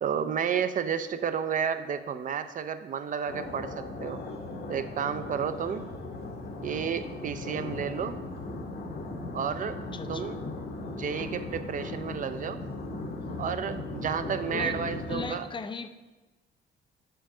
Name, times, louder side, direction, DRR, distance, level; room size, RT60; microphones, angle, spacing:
voice 1, 0.0-4.2 4.7-5.8 6.6-8.2 9.3-9.8 10.1-10.4 11.0-12.6 13.4-15.5, right 7 dB, 40° right, 11 dB, 0.4 m, -31 dB
sound 1, 3.3-15.3, left 2 dB, 55° left, 0.9 m, -37 dB
voice 2, 9.9-10.3 14.5-14.8 15.1-15.9, left 5 dB, 25° left, 9 dB, 0.4 m, -38 dB
5.9 x 4.5 x 3.7 m, 1.2 s
cardioid pair, 90°, 20 cm